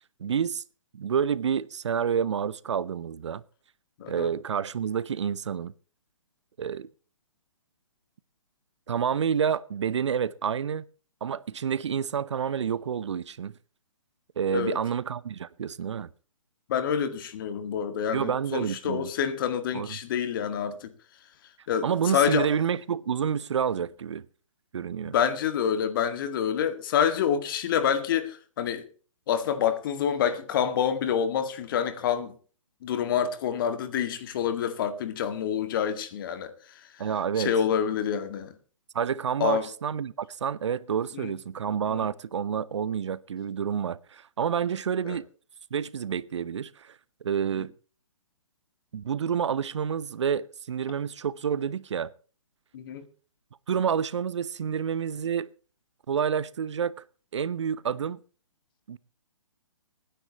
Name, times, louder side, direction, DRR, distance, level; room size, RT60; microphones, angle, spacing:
voice 1, 0.2-0.6 0.9-3.4 4.1-5.7 6.6-6.9 8.9-10.8 11.2-13.5 14.4-16.1 18.1-19.1 19.7-20.0 21.8-24.3 24.7-25.1 37.0-37.5 38.9-45.3 45.7-47.0 47.2-47.7 48.9-52.1 53.7-55.5 56.1-56.9 57.3-58.2 58.9-59.0, right 7 dB, 60° right, 0.7 m, -29 dB
voice 2, 4.0-4.3 14.5-14.8 16.7-20.9 21.7-22.5 25.1-28.8 29.3-32.3 32.8-36.9 37.4-38.6 39.4-39.7 41.1-41.4 41.9-42.1 45.1-45.2 47.6-47.7 52.7-53.1, left 8 dB, 40° left, 1.9 m, -27 dB
26.0 x 10.0 x 3.0 m
figure-of-eight pair, 135°, 17 cm